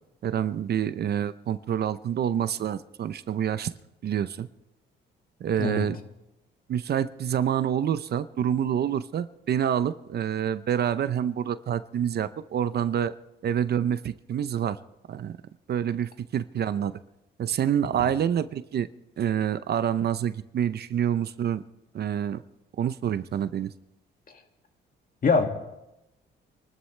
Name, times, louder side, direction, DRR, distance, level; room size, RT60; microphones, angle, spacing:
voice 1, 0.2-3.7 4.0-4.5 5.4-6.0 6.7-13.1 13.4-14.8 15.1-15.3 15.7-17.0 17.4-18.9 19.2-21.6 21.9-22.4 22.8-23.7, right 9 dB, 55° right, 0.6 m, -27 dB
voice 2, 5.6-5.9 18.0-18.1 25.2-25.5, left 4 dB, 45° left, 2.2 m, -23 dB
27.0 x 13.0 x 3.3 m
cardioid pair, 90°, 20 cm